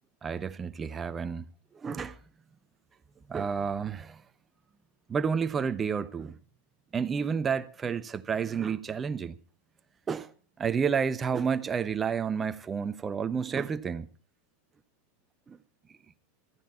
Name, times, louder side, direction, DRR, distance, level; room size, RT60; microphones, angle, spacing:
voice 1, 0.2-1.4 1.7-2.2 3.3-4.2 5.1-6.4 6.9-9.3 10.1-10.3 10.6-14.1 15.5-15.6, right 6 dB, 20° right, 0.9 m, -30 dB
14.5 x 14.5 x 4.2 m
figure-of-eight pair, 90°, 0 cm